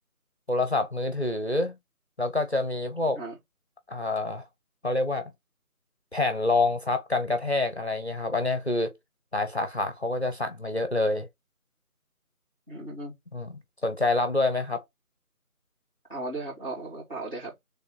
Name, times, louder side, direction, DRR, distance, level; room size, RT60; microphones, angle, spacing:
voice 1, 0.5-1.8 2.2-3.2 3.9-4.4 4.8-5.3 6.1-8.9 9.3-11.3 13.3-14.8, left 2 dB, 45° left, 0.7 m, -27 dB
voice 2, 12.7-13.1 16.1-17.5, right 2 dB, 35° right, 2.7 m, -36 dB
3.7 x 3.4 x 4.2 m
figure-of-eight pair, 180°, 44 cm